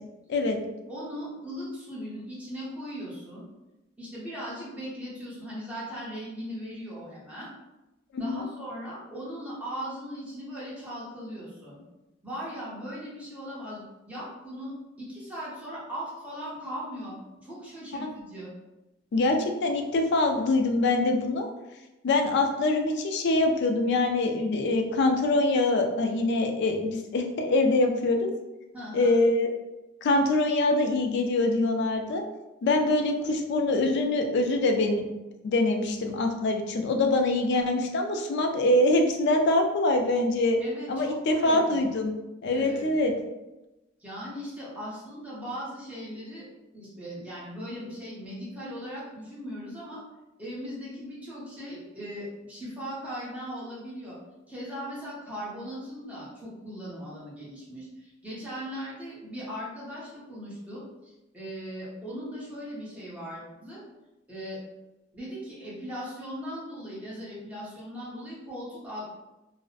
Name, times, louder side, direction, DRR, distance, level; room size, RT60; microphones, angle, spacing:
voice 1, 0.9-3.5 4.0-7.5 8.2-11.8 12.2-18.5 28.7-29.1 40.6-41.8 42.5-42.9 44.0-46.5 46.7-50.0 50.4-54.2 54.5-63.8 64.3-64.6 65.1-69.1, equal, 10° right, -8 dB, 0.8 m, -39 dB
voice 2, 8.1-8.5 18.0-18.1 19.1-21.5 22.0-28.3 28.9-29.5 30.0-32.2 32.6-35.0 35.4-40.6 40.9-42.1 42.4-43.1, left 2 dB, 60° left, 4 dB, 0.3 m, -24 dB
2.5 x 2.0 x 2.4 m, 1.0 s
head